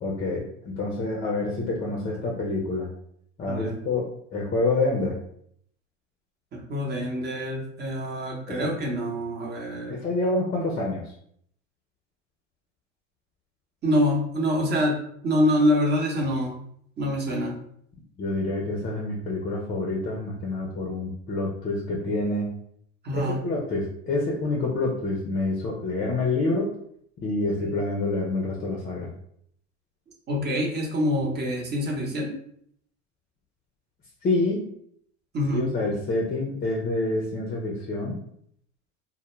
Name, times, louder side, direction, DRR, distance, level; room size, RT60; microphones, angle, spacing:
voice 1, 0.0-2.9 3.4-5.2 8.5-8.7 9.9-11.1 18.2-22.5 23.1-26.7 27.2-29.1 34.2-34.7 35.5-38.1, left 2 dB, 25° left, -1 dB, 0.5 m, -27 dB
voice 2, 3.4-3.8 6.5-10.0 13.8-16.6 17.0-17.6 23.0-23.4 30.3-32.4 35.3-35.7, equal, 25° right, -1 dB, 0.8 m, -26 dB
2.1 x 2.1 x 3.0 m, 0.68 s
hypercardioid pair, 95°, 38 cm